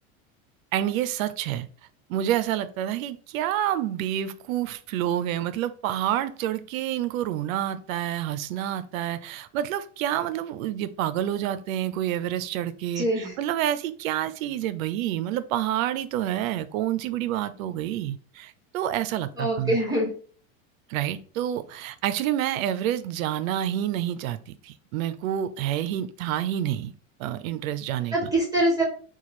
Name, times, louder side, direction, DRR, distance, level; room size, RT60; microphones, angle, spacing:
voice 1, 0.7-1.7 2.1-19.8 20.9-26.9 27.2-28.2, right 11 dB, 75° right, 0.6 m, -28 dB
voice 2, 13.0-13.3 19.4-20.1 28.1-28.8, right 1 dB, 10° right, 1.3 m, -24 dB
3.0 x 2.4 x 4.2 m
supercardioid pair, 135°, 42 cm